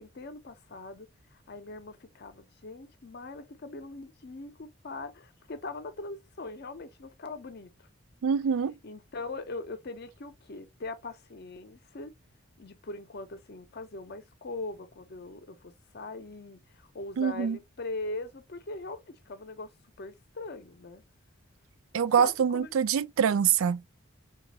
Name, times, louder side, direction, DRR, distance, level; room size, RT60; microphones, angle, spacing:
voice 1, 0.0-7.9 8.8-12.1 12.6-19.7 20.0-21.0 22.2-22.7, left 3 dB, 50° left, 0.6 m, -41 dB
voice 2, 8.2-8.8 17.2-17.6 21.9-23.8, right 7 dB, 75° right, 0.4 m, -25 dB
4.0 x 2.3 x 2.8 m
head